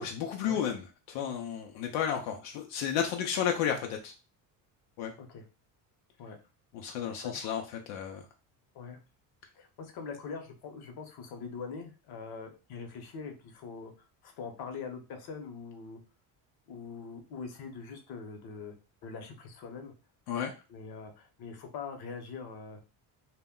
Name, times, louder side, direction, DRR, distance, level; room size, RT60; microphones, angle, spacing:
voice 1, 0.0-4.1 5.0-5.1 6.7-8.2 20.3-20.5, left 8 dB, 85° left, 2 dB, 0.6 m, -32 dB
voice 2, 9.5-13.9 14.2-16.0 16.7-18.8 19.0-19.9 20.7-22.8, left 5 dB, 55° left, 5 dB, 0.8 m, -43 dB
2.2 x 2.1 x 3.6 m, 0.32 s
supercardioid pair, 85°, 46 cm